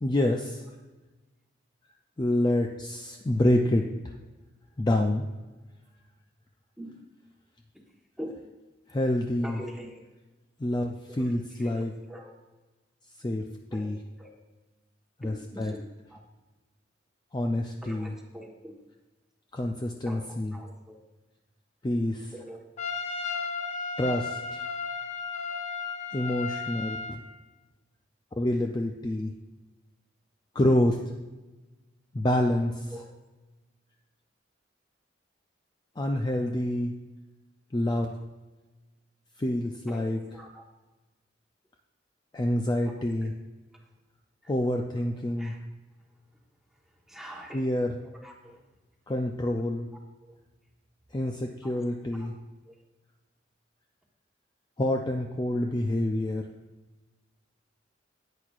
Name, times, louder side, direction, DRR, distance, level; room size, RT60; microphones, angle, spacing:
voice 1, 0.0-0.6 2.2-3.9 4.8-5.2 8.9-9.6 10.6-11.9 13.2-14.0 15.2-15.7 17.3-18.1 19.5-20.5 21.8-22.3 24.0-24.6 26.1-27.2 28.4-29.3 30.5-31.0 32.1-32.9 36.0-36.9 37.7-38.2 39.4-40.2 42.3-43.3 44.5-45.5 47.5-48.0 49.1-49.9 51.1-52.3 54.8-56.5, left 1 dB, 25° left, 3 dB, 0.4 m, -27 dB
voice 2, 9.4-10.0 11.1-12.3 13.7-13.9 14.2-14.4 15.2-15.8 16.1-16.2 17.8-18.8 20.0-21.0 22.3-22.6 32.9-33.0 39.9-40.6 42.8-43.3 44.4-44.5 45.3-45.7 47.1-47.8 48.0-48.6 50.3-50.4 51.6-52.3 52.6-52.7, equal, ahead, -1 dB, 1.3 m, -44 dB
Trumpet, 22.8-27.2, left 5 dB, 40° left, 0.8 m, -34 dB
10.5 x 8.7 x 2.5 m, 1.2 s
head